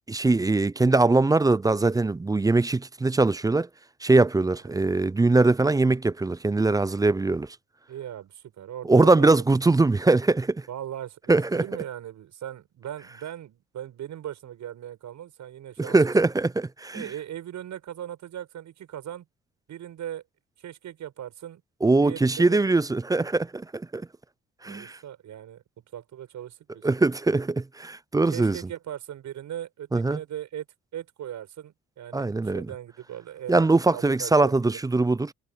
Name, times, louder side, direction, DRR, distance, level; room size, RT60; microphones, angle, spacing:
voice 1, 0.1-3.7 4.0-7.6 8.8-10.7 11.3-11.6 15.8-17.1 21.8-24.1 24.6-25.0 26.8-28.6 29.9-30.2 32.1-32.7 33.5-35.3, right 3 dB, 10° right, 0.4 m, -22 dB
voice 2, 7.9-9.5 10.7-16.0 16.9-19.2 19.7-20.2 20.6-21.6 21.9-22.6 24.6-25.6 25.9-26.9 28.3-30.7 30.9-33.6 33.9-34.5, right 11 dB, 70° right, 7.5 m, -38 dB
cardioid pair, 90°, 30 cm